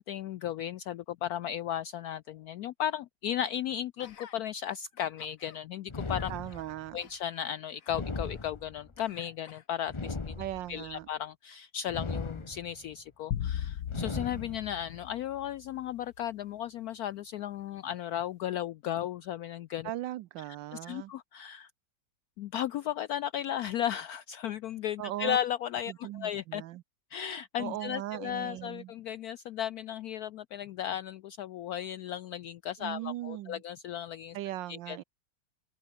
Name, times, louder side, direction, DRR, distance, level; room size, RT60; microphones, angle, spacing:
voice 1, 0.0-6.3 6.9-10.4 10.7-19.9 20.7-21.7 22.4-26.6 27.1-34.4 34.7-35.0, left 10 dB, 90° left, 0.8 m, -35 dB
Gasp, 4.0-4.4 4.9-5.6 6.0-8.5 9.0-10.0 10.7-10.8, left 7 dB, 45° left, 1.6 m, -54 dB
sound 1, 5.9-6.9 7.9-9.0 9.9-10.9 11.9-12.9 13.9-14.9, left 3 dB, 25° left, 0.7 m, -38 dB
voice 2, 6.3-7.0 10.4-11.1 19.8-21.1 25.0-25.4 25.9-26.8 27.6-28.9 32.8-33.6 34.3-35.0, right 14 dB, 75° right, 1.3 m, -38 dB
sound 2, 13.3-15.8, left 10 dB, 60° left, 1.6 m, -37 dB
open air
omnidirectional pair, 2.2 m